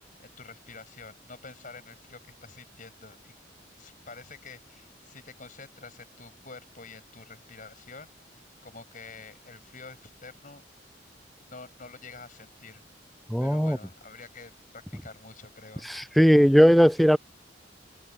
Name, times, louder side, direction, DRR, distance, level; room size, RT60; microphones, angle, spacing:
voice 1, 0.0-3.3 3.8-8.1 8.6-10.6 11.5-12.8 13.4-16.1, left 4 dB, 45° left, 6.3 m, -47 dB
voice 2, 13.3-13.8 15.8-17.2, equal, ahead, 0.5 m, -18 dB
head